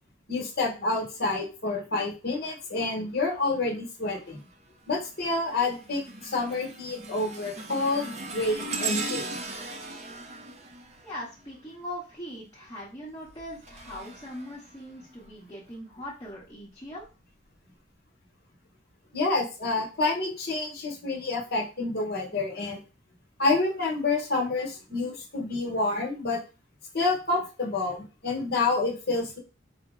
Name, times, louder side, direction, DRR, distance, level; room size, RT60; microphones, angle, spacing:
voice 1, 0.3-4.4 4.9-9.2 19.1-22.8 23.4-26.4 26.9-29.4, left 3 dB, 50° left, 1 dB, 1.1 m, -28 dB
sound 1, 4.1-4.5 5.0-11.8 13.1-15.3 15.9-16.1 17.0-17.1, right 3 dB, 35° right, 0.5 m, -38 dB
voice 2, 11.0-17.1, equal, 20° left, -7 dB, 1.0 m, -41 dB
4.3 x 2.1 x 3.6 m, 0.32 s
head